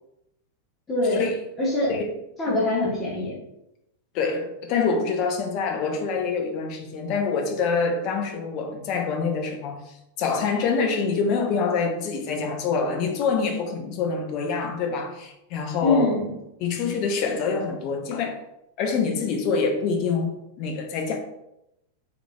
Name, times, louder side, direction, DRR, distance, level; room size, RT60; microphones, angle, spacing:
voice 1, 0.9-1.2 1.6-2.0 2.4-3.4 15.8-16.3, left 2 dB, 20° left, 1.1 m, -23 dB
voice 2, 4.1-9.8 10.2-16.2 16.6-18.4 18.8-21.2, left 5 dB, 40° left, 0.6 m, -26 dB
3.7 x 3.2 x 2.3 m
figure-of-eight pair, 90°, 0 cm